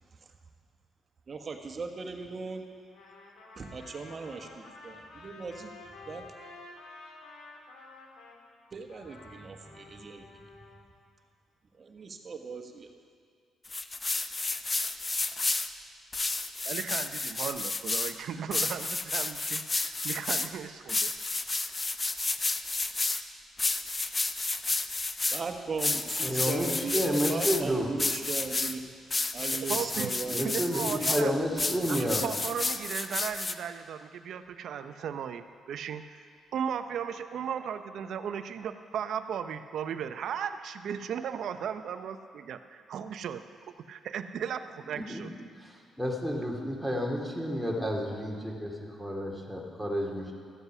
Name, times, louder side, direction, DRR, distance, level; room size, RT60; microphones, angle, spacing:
voice 1, 1.3-2.6 3.6-5.7 6.0-6.3 8.7-10.8 11.8-12.9 25.3-28.8 29.3-31.9, right 4 dB, 45° right, 4 dB, 1.3 m, -38 dB
Trumpet, 2.9-8.4 8.9-10.8, left 3 dB, 75° left, 2.0 m, -50 dB
sound 1, 13.7-15.7 16.1-18.1 18.5-20.5 20.9-23.2 23.6-25.4 25.8-27.6 28.0-28.7 29.1-31.2 31.6-33.5, left 3 dB, 25° left, 0.6 m, -31 dB
voice 2, 16.7-21.1 29.7-30.1 30.4-31.3 31.9-43.4 43.9-45.3, right 8 dB, 70° right, 10 dB, 0.6 m, -36 dB
voice 3, 25.9-27.9 30.2-32.2 45.1-45.2 45.6-50.3, equal, ahead, -2 dB, 2.2 m, -31 dB
13.5 x 8.1 x 6.1 m, 2.2 s
cardioid pair, 70°, 0 cm